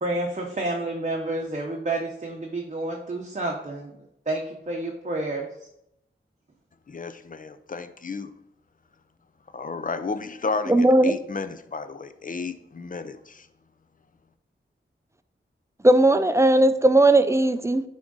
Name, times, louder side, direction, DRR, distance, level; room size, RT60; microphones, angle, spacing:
voice 1, 0.0-5.5, right 2 dB, 35° right, 0 dB, 0.9 m, -30 dB
voice 2, 6.9-8.3 9.5-13.5, left 4 dB, 40° left, 10 dB, 0.5 m, -32 dB
voice 3, 10.7-11.2 15.8-17.8, right 1 dB, 15° right, 11 dB, 0.4 m, -17 dB
9.9 x 3.7 x 3.9 m, 0.81 s
wide cardioid pair, 90°, 21 cm